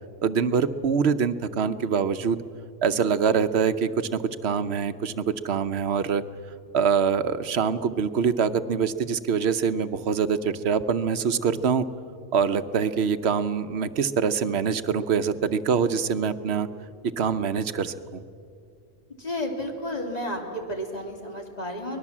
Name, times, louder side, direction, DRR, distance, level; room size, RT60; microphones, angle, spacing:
voice 1, 0.2-2.4 2.8-6.2 6.7-11.9 12.3-16.7 17.0-18.2, right 6 dB, 75° right, 11 dB, 1.1 m, -24 dB
voice 2, 19.2-22.0, left 1 dB, 35° left, 2 dB, 2.9 m, -32 dB
24.5 x 20.0 x 7.3 m, 2.4 s
omnidirectional pair, 1.1 m